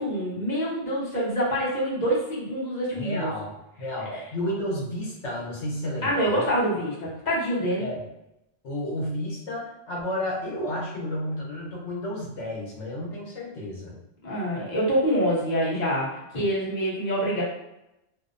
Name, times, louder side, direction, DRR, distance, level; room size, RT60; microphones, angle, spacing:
voice 1, 0.0-3.3 4.1-4.2 6.0-7.9 14.2-17.4, equal, 40° left, -6 dB, 1.0 m, -26 dB
voice 2, 2.9-6.5 7.8-8.0 8.6-14.0, left 1 dB, 90° left, -3 dB, 1.1 m, -32 dB
2.6 x 2.0 x 2.5 m, 0.90 s
omnidirectional pair, 1.2 m